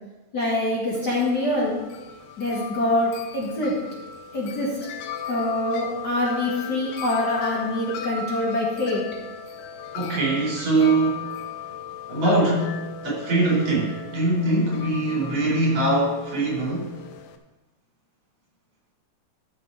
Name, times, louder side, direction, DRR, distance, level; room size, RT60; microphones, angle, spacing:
voice 1, 0.3-1.8 2.4-3.7 4.3-4.8 5.3-9.0, left 1 dB, 40° left, -5 dB, 2.1 m, -25 dB
Wind chime, 0.9-17.4, left 7 dB, 80° left, 2.2 m, -37 dB
voice 2, 9.9-11.4 12.1-16.9, right 2 dB, 65° right, -3 dB, 5.8 m, -22 dB
13.5 x 6.6 x 4.8 m, 1.1 s
omnidirectional pair, 3.4 m